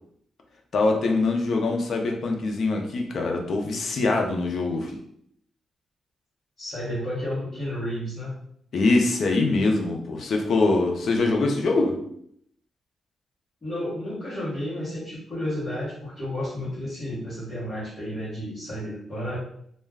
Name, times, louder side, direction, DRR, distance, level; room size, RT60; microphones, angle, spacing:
voice 1, 0.7-4.9 8.7-12.0, left 3 dB, 50° left, 2 dB, 0.4 m, -23 dB
voice 2, 6.6-8.3 13.6-19.4, left 1 dB, 25° left, -9 dB, 0.8 m, -32 dB
2.3 x 2.1 x 3.3 m, 0.70 s
wide cardioid pair, 150°, 0 cm